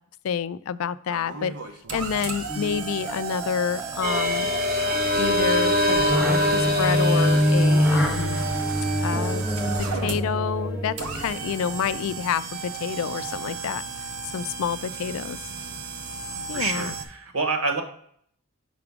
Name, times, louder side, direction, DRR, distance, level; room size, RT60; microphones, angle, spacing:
voice 1, 0.2-1.5 1.9-4.5 5.1-8.4 9.0-13.8 14.3-15.4 16.5-16.9, left 7 dB, 65° left, 16 dB, 0.3 m, -28 dB
sound 1, 1.1-17.0, right 5 dB, 85° right, 0.8 m, -35 dB
sound 2, 2.5-11.6, equal, ahead, 0.5 m, -27 dB
sound 3, 4.0-10.9, left 1 dB, 45° right, 0.9 m, -25 dB
voice 2, 16.5-17.8, right 3 dB, 70° right, 5 dB, 1.2 m, -27 dB
5.7 x 4.9 x 3.5 m, 0.65 s
head